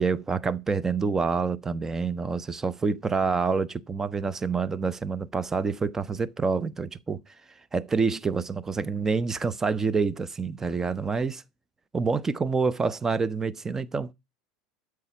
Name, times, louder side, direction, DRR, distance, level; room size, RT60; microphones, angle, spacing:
voice 1, 0.0-7.2 7.7-11.4 11.9-14.1, right 4 dB, 20° right, 0.8 m, -27 dB
12.5 x 4.9 x 8.1 m
figure-of-eight pair, 75°, 2 cm